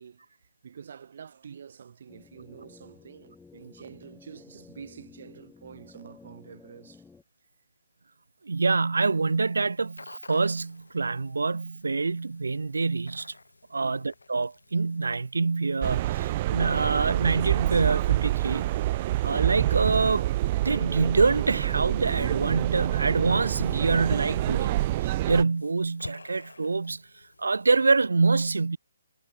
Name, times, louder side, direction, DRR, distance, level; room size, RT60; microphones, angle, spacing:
voice 1, 0.0-7.0 13.8-14.1, right 7 dB, 50° right, 4.1 m, -47 dB
sound 1, 2.1-7.2, left 4 dB, 5° left, 2.4 m, -53 dB
voice 2, 8.4-13.3 13.7-18.7 19.2-20.3 20.6-24.7 25.0-27.0 27.4-28.8, right 4 dB, 70° right, 1.0 m, -26 dB
sound 2, 9.1-27.9, left 3 dB, 70° left, 6.6 m, -50 dB
sound 3, 15.8-25.4, right 16 dB, 30° right, 0.3 m, -27 dB
figure-of-eight pair, 135°, 0 cm